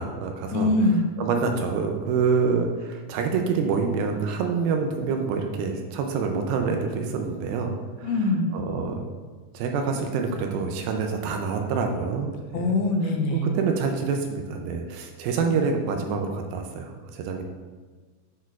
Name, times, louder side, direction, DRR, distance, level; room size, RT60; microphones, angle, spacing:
voice 1, 0.0-0.7 1.2-7.7 8.0-8.1 8.5-9.0 9.5-12.8 13.3-17.4, right 5 dB, 80° right, 3 dB, 2.2 m, -26 dB
voice 2, 0.5-1.0 8.0-8.5 12.5-13.5 15.4-15.6, left 2 dB, 85° left, 2 dB, 2.7 m, -23 dB
10.0 x 4.4 x 2.4 m, 1.4 s
omnidirectional pair, 4.4 m